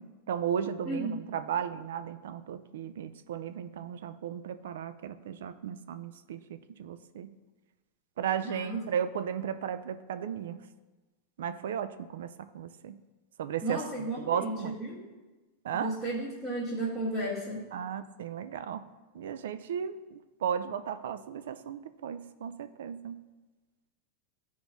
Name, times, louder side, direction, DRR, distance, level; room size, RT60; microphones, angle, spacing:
voice 1, 0.0-7.4 8.2-10.6 11.4-13.0 13.4-14.7 15.6-16.0 17.7-18.9 19.1-23.2, right 8 dB, 90° right, 13 dB, 0.3 m, -35 dB
voice 2, 0.8-1.2 8.4-8.8 13.6-15.0 15.8-17.6, right 1 dB, 10° right, -9 dB, 1.2 m, -33 dB
12.5 x 4.7 x 2.7 m, 1.2 s
supercardioid pair, 170°, 0 cm